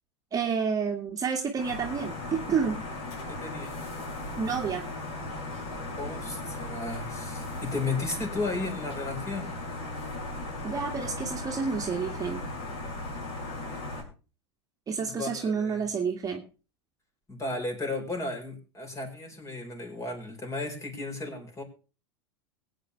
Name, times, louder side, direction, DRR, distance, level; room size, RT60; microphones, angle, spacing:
voice 1, 0.3-2.8 4.4-4.9 10.6-12.4 14.9-16.4, right 6 dB, 25° right, 2 dB, 1.8 m, -29 dB
sound 1, 1.6-14.0, left 2 dB, 55° left, 5.9 m, -37 dB
voice 2, 3.3-3.8 6.0-9.5 15.0-15.8 17.3-21.6, left 3 dB, 20° left, 4 dB, 4.5 m, -34 dB
21.5 x 9.0 x 3.2 m, 0.34 s
hypercardioid pair, 90°, 14 cm